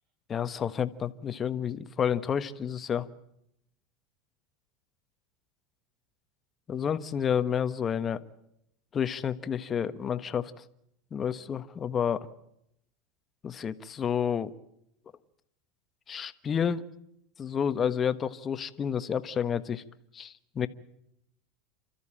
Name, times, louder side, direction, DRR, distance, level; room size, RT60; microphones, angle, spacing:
voice 1, 0.3-3.1 6.7-8.2 8.9-10.5 11.1-12.3 13.4-14.5 16.1-16.8 17.4-19.8 20.1-20.7, left 8 dB, 30° left, 12 dB, 1.3 m, -30 dB
29.0 x 13.5 x 8.9 m, 0.78 s
supercardioid pair, 120°, 0 cm